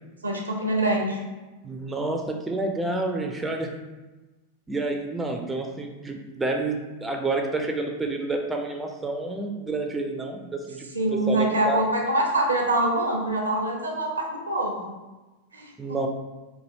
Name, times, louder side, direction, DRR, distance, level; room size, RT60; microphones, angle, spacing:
voice 1, 0.2-1.2 10.9-14.9 15.5-16.0, right 1 dB, 75° right, 1 dB, 0.5 m, -25 dB
voice 2, 1.6-3.7 4.7-11.8 15.8-16.1, right 2 dB, 10° right, 3 dB, 0.3 m, -29 dB
3.1 x 2.3 x 2.7 m, 1.1 s
figure-of-eight pair, 90°, 0 cm